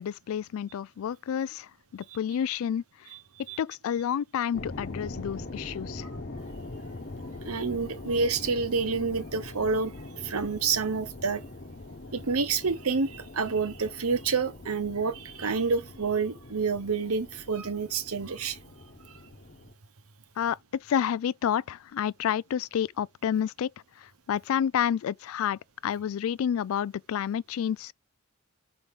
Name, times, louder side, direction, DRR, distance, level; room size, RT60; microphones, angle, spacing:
voice 1, 0.0-3.1 3.6-6.1 20.4-23.7 24.0-27.9, left 9 dB, 65° left, 0.3 m, -30 dB
sound 1, 4.5-19.7, left 2 dB, 45° left, 1.1 m, -42 dB
voice 2, 7.5-11.4 12.1-18.6, right 4 dB, 80° right, 1.0 m, -28 dB
6.1 x 5.1 x 3.6 m
head